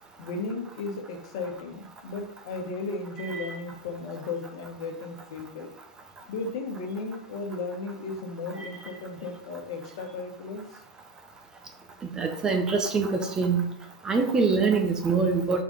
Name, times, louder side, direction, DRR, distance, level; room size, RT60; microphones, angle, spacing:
voice 1, 0.2-5.7 6.3-10.8, left 3 dB, 65° left, 3 dB, 1.3 m, -35 dB
voice 2, 12.2-13.7 14.0-15.6, right 4 dB, 20° right, 5 dB, 0.9 m, -24 dB
4.9 x 3.8 x 5.2 m, 0.76 s
hypercardioid pair, 115°, 3 cm